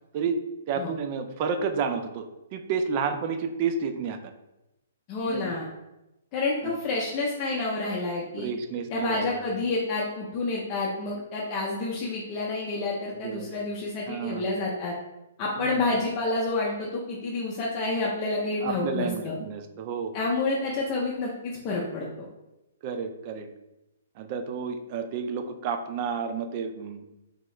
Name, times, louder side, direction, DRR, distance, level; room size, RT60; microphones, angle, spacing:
voice 1, 0.7-2.3 2.5-4.3 5.3-5.4 6.6-6.7 8.4-9.4 13.2-13.5 14.1-14.4 15.6-15.8 18.6-20.1 22.8-23.5 24.2-27.0, right 6 dB, 35° right, 8 dB, 0.4 m, -30 dB
voice 2, 5.1-5.6 6.3-8.5 8.9-14.9 15.4-19.3 20.1-22.2, left 3 dB, 25° left, -4 dB, 0.6 m, -29 dB
3.5 x 2.9 x 3.2 m, 0.93 s
hypercardioid pair, 160°, 0 cm